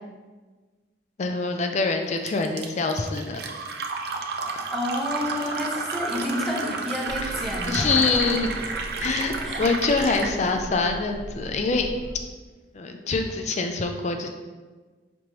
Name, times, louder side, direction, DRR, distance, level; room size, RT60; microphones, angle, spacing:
voice 1, 1.2-3.4 7.2-7.3 7.7-8.5 9.0-11.9 12.7-14.3, left 3 dB, 40° left, 5 dB, 0.4 m, -25 dB
Fill (with liquid), 2.3-10.4, right 4 dB, 60° right, 0.4 m, -31 dB
voice 2, 4.7-8.2 9.4-9.6 9.9-10.2, left 1 dB, ahead, -3 dB, 0.6 m, -30 dB
Boat Water vehicle, 7.1-12.2, equal, 75° right, 0.9 m, -39 dB
5.1 x 3.0 x 2.9 m, 1.4 s
head